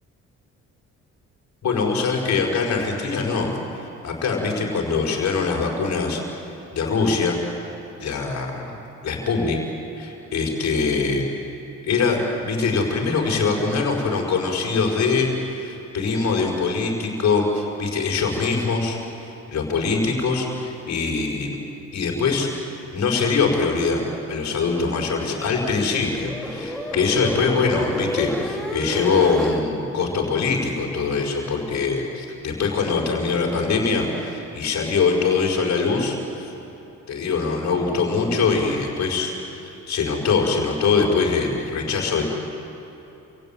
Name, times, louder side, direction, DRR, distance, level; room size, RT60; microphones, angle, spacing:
voice 1, 1.6-3.5 4.0-6.2 6.7-7.4 8.0-8.7 9.0-9.6 10.0-11.2 11.8-19.0 19.5-21.6 21.9-36.5 37.1-42.2, left 4 dB, 65° left, 0 dB, 5.5 m, -23 dB
sound 1, 25.0-29.6, equal, ahead, 3.5 m, -31 dB
27.5 x 17.0 x 9.2 m, 3.0 s
cardioid pair, 90°, 30 cm